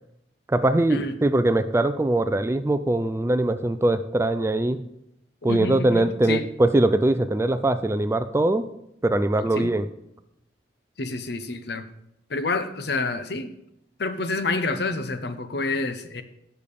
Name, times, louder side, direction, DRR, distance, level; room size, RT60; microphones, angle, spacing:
voice 1, 0.5-4.8 5.4-8.7 9.0-9.9, right 1 dB, 15° right, 11 dB, 0.3 m, -22 dB
voice 2, 5.4-6.4 9.5-9.7 11.0-11.8 12.3-13.5 14.0-16.2, left 3 dB, 60° left, 10 dB, 0.7 m, -28 dB
8.6 x 6.7 x 5.2 m, 0.82 s
head